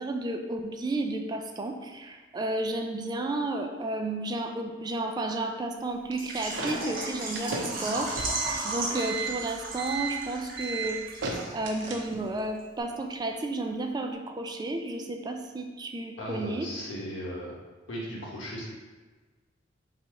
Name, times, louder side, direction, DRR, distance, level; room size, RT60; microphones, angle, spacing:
voice 1, 0.0-8.4 8.6-11.0 11.5-16.7, right 2 dB, 20° right, 4 dB, 0.3 m, -32 dB
sound 1, 6.1-12.4, right 4 dB, 70° right, 0.7 m, -35 dB
Water / Liquid, 6.2-11.8 12.0-12.1 12.6-12.7, right 2 dB, 50° right, 1.0 m, -35 dB
voice 2, 16.2-17.6 17.9-18.6, equal, 85° left, -4 dB, 1.2 m, -37 dB
4.0 x 2.8 x 4.7 m, 1.3 s
head